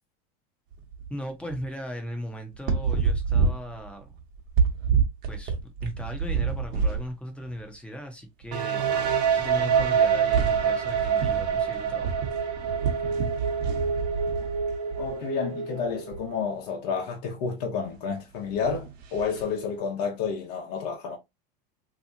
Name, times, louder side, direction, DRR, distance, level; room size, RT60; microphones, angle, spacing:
sound 1, 0.7-1.1 1.5-1.7 2.5-7.1 7.4-7.6 8.4-8.5 8.8-15.1 15.9-16.3 18.4-19.5, right 6 dB, 45° right, 1.1 m, -29 dB
voice 1, 1.1-4.1 5.3-12.2, equal, 5° left, 0.8 m, -38 dB
sound 2, 8.5-16.2, right 7 dB, 80° right, 0.9 m, -26 dB
voice 2, 15.0-21.2, left 6 dB, 70° left, 1.0 m, -30 dB
3.3 x 2.9 x 2.7 m
supercardioid pair, 145°, 21 cm